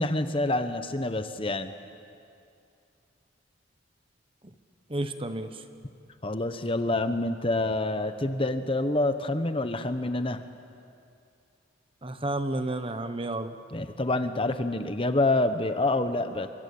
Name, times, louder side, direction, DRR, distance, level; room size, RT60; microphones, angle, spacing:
voice 1, 0.0-1.7 6.2-10.4 13.7-16.5, left 2 dB, 30° left, 9 dB, 1.0 m, -27 dB
voice 2, 4.9-5.6 12.0-13.6, right 1 dB, 30° right, 9 dB, 1.2 m, -31 dB
28.0 x 24.0 x 8.7 m, 2.5 s
head